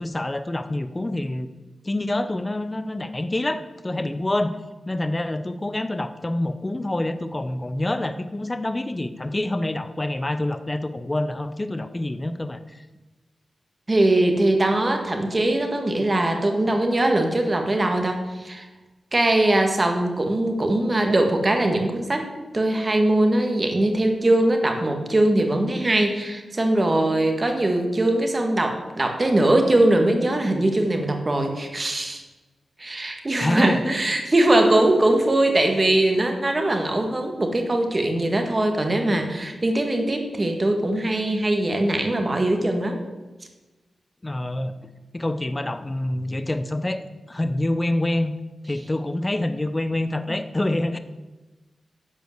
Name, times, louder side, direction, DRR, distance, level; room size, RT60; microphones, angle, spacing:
voice 1, 0.0-1.5 1.8-4.5 4.9-12.8 33.4-33.8 44.2-44.7 45.1-47.0 47.3-48.3 48.6-51.0, left 1 dB, 25° left, 10 dB, 0.8 m, -26 dB
voice 2, 13.9-18.7 19.1-22.3 22.5-32.2 32.8-43.0 50.3-50.4, right 1 dB, 30° right, 4 dB, 1.9 m, -21 dB
11.0 x 5.2 x 8.0 m, 1.2 s
cardioid pair, 70°, 0 cm